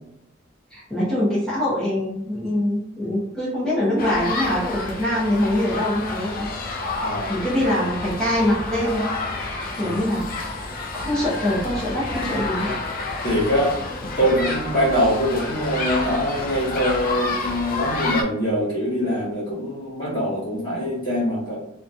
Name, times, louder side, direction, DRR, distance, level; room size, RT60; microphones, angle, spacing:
voice 1, 0.7-6.5 6.8-9.1 9.4-10.5 10.9-12.8, left 1 dB, 5° left, -10 dB, 0.6 m, -24 dB
sound 1, 4.0-18.2, left 2 dB, 45° left, 0.3 m, -29 dB
voice 2, 7.0-7.4 9.8-10.1 13.2-13.8 14.2-21.6, equal, 20° left, -11 dB, 1.1 m, -23 dB
2.7 x 2.3 x 2.5 m, 0.80 s
head